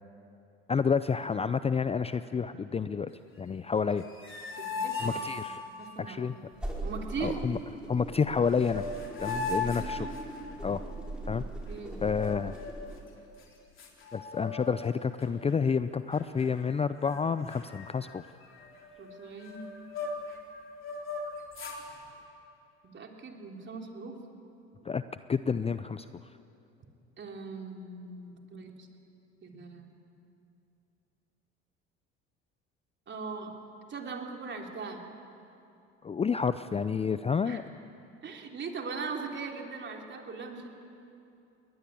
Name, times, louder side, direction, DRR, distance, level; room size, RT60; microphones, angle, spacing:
voice 1, 0.7-3.1 3.4-4.0 5.0-5.6 6.0-6.4 7.2-7.6 7.9-8.9 9.2-10.1 10.6-10.8 11.3-11.4 12.0-12.5 14.1-18.2 24.8-25.0 25.3-26.1 36.0-37.6, left 6 dB, 20° left, 13 dB, 0.5 m, -29 dB
sound 1, 3.9-5.9 8.1-8.2 8.5-10.7 12.0-12.9 13.4-13.5 13.8-14.9 15.2-15.5 16.1-16.7 17.0-17.2 17.5-20.4 20.8-21.8, left 3 dB, 40° left, 4.1 m, -38 dB
voice 2, 4.6-5.2 5.7-6.3 6.8-7.4 9.5-10.1 11.3-12.0 19.0-19.7 22.8-24.2 27.2-28.9 29.4-29.9 33.1-33.5 33.9-35.0 37.4-37.6 38.2-40.7, right 4 dB, 35° right, 2 dB, 3.4 m, -40 dB
sound 2, 6.5-13.0, right 2 dB, 5° right, 5.3 m, -40 dB
22.0 x 20.0 x 8.6 m, 2.8 s
hypercardioid pair, 80°, 31 cm